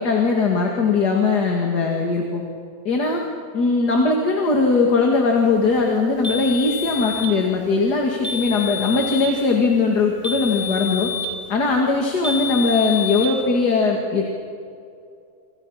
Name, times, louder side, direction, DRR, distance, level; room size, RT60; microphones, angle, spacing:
voice 1, 0.0-2.4 2.8-3.2 3.5-11.1 11.5-14.3, left 4 dB, 80° left, 0 dB, 2.8 m, -20 dB
sound 1, 6.2-7.4 8.2-9.4 10.2-11.4 12.2-13.4, left 5 dB, 5° left, 3.5 m, -28 dB
28.0 x 27.0 x 5.8 m, 2.5 s
omnidirectional pair, 1.7 m